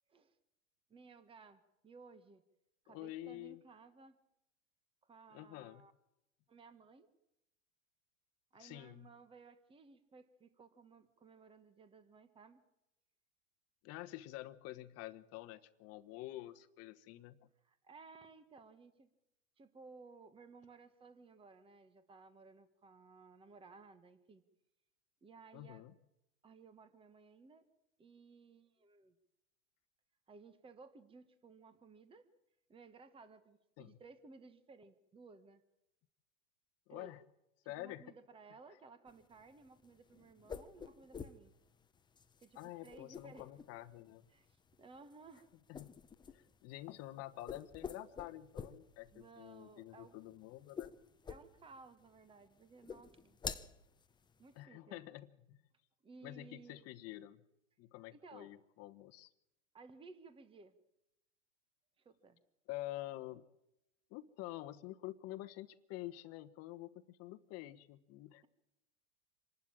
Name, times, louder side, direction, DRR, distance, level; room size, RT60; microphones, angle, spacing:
voice 1, 0.9-2.4 2.8-4.2 5.0-5.9 6.5-7.1 8.5-12.6 17.6-19.1 19.6-24.4 25.2-25.8 26.4-27.6 28.0-29.1 30.3-32.3 32.7-35.6 36.9-37.1 37.8-41.5 42.4-43.5 44.3-45.5 49.1-50.2 51.2-53.4 54.4-55.0 56.0-56.8 58.1-58.5 59.7-60.7 62.0-62.4, right 4 dB, 15° right, 11 dB, 1.4 m, -58 dB
voice 2, 2.9-3.6 5.3-5.8 8.6-9.1 13.8-17.4 25.5-25.9 33.8-33.9 36.9-37.2 37.6-38.1 42.5-44.3 45.7-45.9 46.3-50.9 54.5-55.6 56.2-57.4 57.8-59.3 62.7-63.4 64.1-68.5, left 16 dB, 40° left, 10 dB, 1.2 m, -48 dB
sound 1, 39.1-54.6, left 6 dB, 10° left, 0.8 m, -50 dB
26.5 x 12.0 x 8.9 m, 0.88 s
hypercardioid pair, 115°, 38 cm